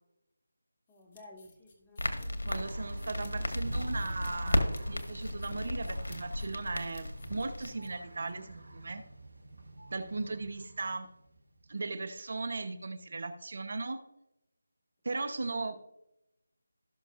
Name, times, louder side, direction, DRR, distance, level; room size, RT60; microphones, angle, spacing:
sound 1, 0.9-8.3, left 3 dB, 30° left, 2.0 m, -60 dB
voice 1, 0.9-2.7 3.4-3.5, left 1 dB, 15° left, -1 dB, 1.8 m, -54 dB
Crackle, 2.0-7.7, left 1 dB, 75° left, 1.7 m, -34 dB
voice 2, 2.4-9.0 9.9-11.1 11.7-14.0 15.0-15.9, right 3 dB, 55° right, 9 dB, 1.1 m, -37 dB
sound 2, 2.6-11.7, right 1 dB, 80° right, 4.0 m, -47 dB
17.5 x 6.3 x 2.6 m, 0.85 s
figure-of-eight pair, 165°, 0 cm